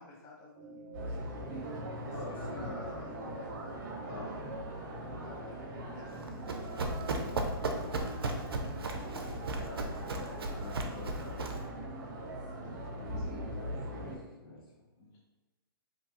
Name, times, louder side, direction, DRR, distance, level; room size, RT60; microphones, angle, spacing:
voice 1, 0.0-3.8 5.2-9.4 12.9-13.3 15.0-15.2, left 3 dB, 25° left, -3 dB, 0.5 m, -52 dB
sound 1, 0.5-8.5, right 3 dB, 20° right, 0.8 m, -51 dB
sound 2, 0.9-14.2, right 1 dB, 50° right, 0.8 m, -41 dB
voice 2, 2.0-3.1 4.1-4.3 9.6-11.8 13.5-14.9, left 2 dB, 75° left, -4 dB, 1.0 m, -46 dB
Run, 6.1-11.7, right 2 dB, 85° right, 0.4 m, -36 dB
2.8 x 2.3 x 2.8 m, 1.1 s
hypercardioid pair, 125°, 12 cm